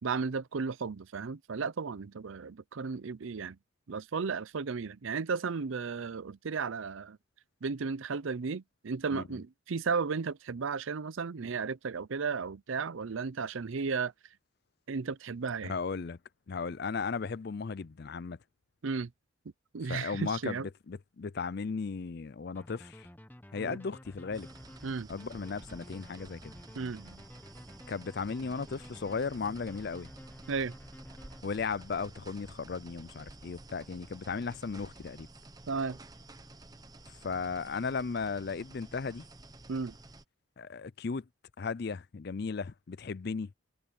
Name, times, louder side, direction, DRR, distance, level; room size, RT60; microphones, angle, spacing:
voice 1, 0.0-3.6 3.9-7.2 7.6-14.1 14.9-15.7 18.8-19.1 19.7-20.7 23.6-23.8 24.8-25.1 26.8-27.2 30.5-30.7 35.7-36.0 39.7-40.0, right 5 dB, 75° right, 0.6 m, -34 dB
voice 2, 15.6-16.2 16.5-18.4 19.9-20.6 20.9-23.1 23.5-24.5 25.1-26.5 27.9-30.1 31.4-35.3 37.2-39.2 40.6-41.2 41.6-43.5, left 5 dB, 50° left, 0.5 m, -36 dB
sound 1, 22.5-31.9, left 1 dB, 10° left, 1.0 m, -52 dB
sound 2, 24.3-40.2, right 2 dB, 20° right, 1.0 m, -52 dB
head